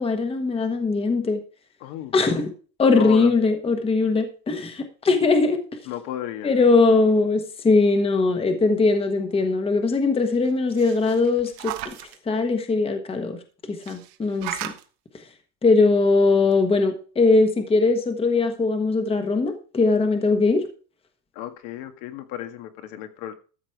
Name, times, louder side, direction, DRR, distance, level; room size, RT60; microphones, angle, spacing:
voice 1, 0.0-1.4 2.1-2.5 2.8-5.6 6.4-11.9 12.3-13.4 13.7-14.7 15.6-20.6, left 3 dB, 15° left, 7 dB, 1.3 m, -20 dB
voice 2, 1.8-2.4 2.9-3.3 5.9-6.7 21.4-23.3, left 12 dB, 60° left, 8 dB, 1.8 m, -34 dB
sound 1, 10.5-12.2 13.8-14.8 16.1-16.2 16.5-16.6, right 16 dB, 60° right, 1.3 m, -36 dB
13.5 x 6.9 x 4.6 m, 0.37 s
cardioid pair, 160°, 44 cm